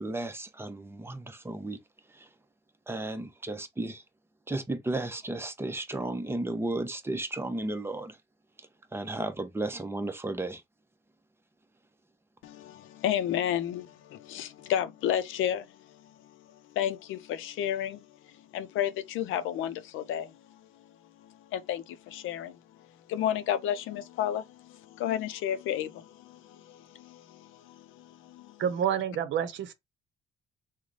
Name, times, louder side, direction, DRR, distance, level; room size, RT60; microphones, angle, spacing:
voice 1, 0.0-1.8 2.1-2.3 2.9-4.0 4.5-8.2 8.9-10.6, right 2 dB, 10° right, 0.6 m, -34 dB
voice 2, 12.4-20.6 21.2-22.6 23.1-28.6, left 10 dB, 85° left, 0.5 m, -32 dB
voice 3, 28.6-29.7, right 9 dB, 70° right, 0.7 m, -28 dB
3.1 x 2.1 x 3.8 m
cardioid pair, 90°, 20 cm